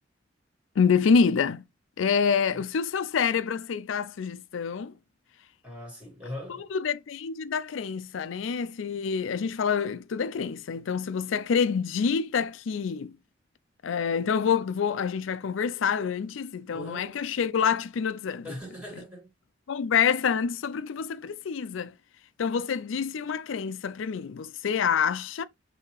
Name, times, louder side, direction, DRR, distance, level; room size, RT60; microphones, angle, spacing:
voice 1, 0.8-1.6 2.0-5.0 6.5-13.2 13.8-18.5 19.7-21.9 22.4-25.4, left 6 dB, 80° left, 0.4 m, -27 dB
voice 2, 2.2-2.6 5.6-6.7 16.7-17.1 18.4-19.3, left 1 dB, 5° right, 2.4 m, -41 dB
5.8 x 2.8 x 3.1 m
head